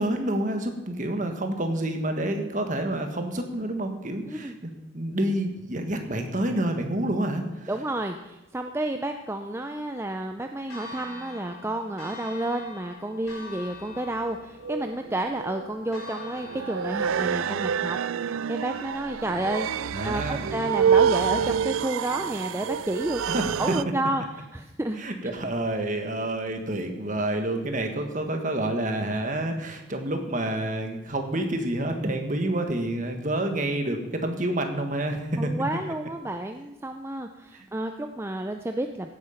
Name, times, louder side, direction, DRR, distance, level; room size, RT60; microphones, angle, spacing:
voice 1, 0.0-7.7 19.9-20.5 23.3-23.7 25.0-35.5 37.5-37.7, right 1 dB, 40° right, 5 dB, 1.6 m, -28 dB
voice 2, 7.7-18.0 18.5-24.2 24.5-25.3 35.4-39.1, right 1 dB, 10° right, 5 dB, 0.4 m, -31 dB
Church bell, 10.7-17.2, left 2 dB, 85° left, 4.9 m, -44 dB
sound 1, 13.3-13.4 14.6-23.8, right 7 dB, 85° right, 0.4 m, -27 dB
15.5 x 8.8 x 5.8 m, 1.0 s
head